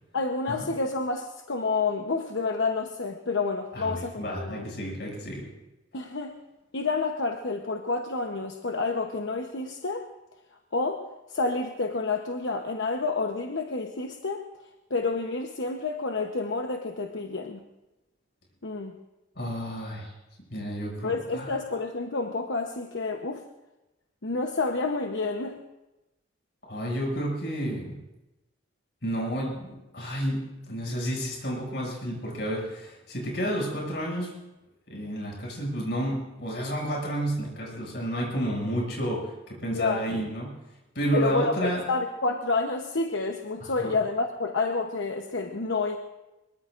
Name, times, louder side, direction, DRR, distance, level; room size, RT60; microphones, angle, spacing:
voice 1, 0.1-4.7 5.9-6.4 6.7-10.1 10.7-11.0 11.3-14.5 14.9-17.6 18.6-19.0 21.0-23.4 24.2-25.6 39.7-40.0 41.1-46.0, left 3 dB, 85° left, 4 dB, 1.0 m, -29 dB
voice 2, 3.7-5.4 19.4-20.1 20.5-21.6 26.7-28.0 29.0-34.3 34.9-40.5 41.0-41.8 43.6-44.0, equal, 60° left, -2 dB, 6.9 m, -31 dB
24.0 x 22.5 x 2.6 m, 1.0 s
head